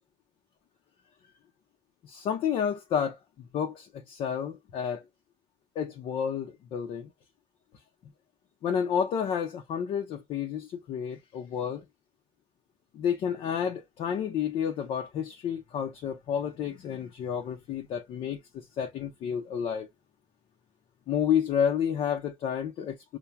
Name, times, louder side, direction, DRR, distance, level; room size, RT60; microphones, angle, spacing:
voice 1, 2.0-3.2 3.5-5.0 5.8-7.1 8.6-11.8 12.9-19.9 21.1-23.2, left 8 dB, 75° left, 0.7 m, -30 dB
5.6 x 2.2 x 2.2 m
cardioid pair, 95°, 9 cm